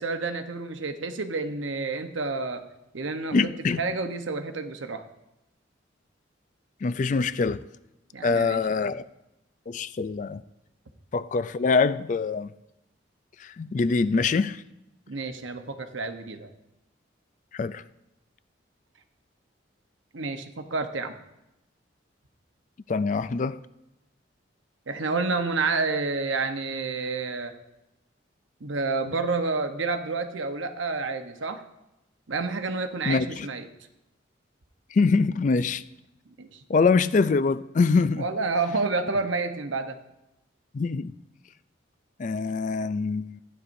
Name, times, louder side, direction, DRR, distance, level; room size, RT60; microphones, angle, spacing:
voice 1, 0.0-2.6 2.9-3.5 3.8-5.0 8.1-8.9 15.1-16.5 20.1-21.1 24.9-27.5 28.6-31.6 32.3-33.7 36.4-36.5 38.2-40.0, right 3 dB, 80° right, 0.9 m, -29 dB
voice 2, 3.3-3.8 6.8-7.6 8.2-9.0 9.7-10.4 11.1-12.5 13.4-14.6 17.5-17.8 22.9-23.6 33.1-33.5 34.9-35.8 36.7-38.2 40.7-41.1 42.2-43.4, left 4 dB, 40° left, 0.3 m, -24 dB
15.0 x 9.8 x 2.6 m
head